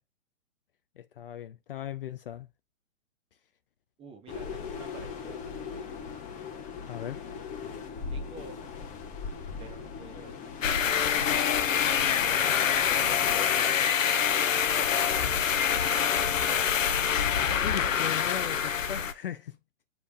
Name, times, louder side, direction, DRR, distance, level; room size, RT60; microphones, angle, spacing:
voice 1, 1.0-2.5 6.9-7.2 17.6-19.6, left 11 dB, 45° left, 0.5 m, -38 dB
voice 2, 4.0-5.9 8.1-8.8 9.6-10.4 12.0-13.7 14.7-16.0 16.7-17.0, right 4 dB, 15° right, 1.4 m, -51 dB
sound 1, 4.3-13.8, left 5 dB, 20° left, 1.1 m, -40 dB
sound 2, 10.6-19.1, left 8 dB, 75° left, 0.8 m, -25 dB
8.1 x 3.5 x 3.5 m
figure-of-eight pair, 125°, 39 cm